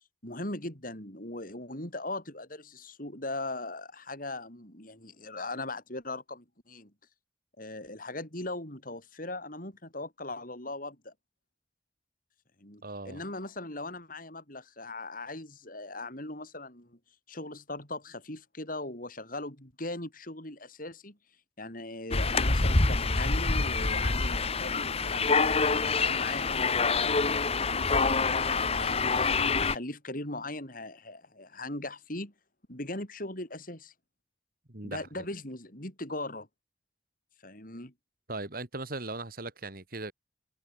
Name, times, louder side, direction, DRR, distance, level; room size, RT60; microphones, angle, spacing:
voice 1, 0.2-6.9 7.6-11.1 12.6-17.0 17.3-21.2 21.6-25.6 25.9-32.3 32.7-33.9 34.8-36.5 37.4-37.9, left 2 dB, 50° left, 7.4 m, -39 dB
voice 2, 12.8-13.2 34.7-35.1 38.3-40.1, right 2 dB, 55° right, 2.9 m, -38 dB
sound 1, 22.1-29.8, left 4 dB, 35° left, 1.2 m, -26 dB
head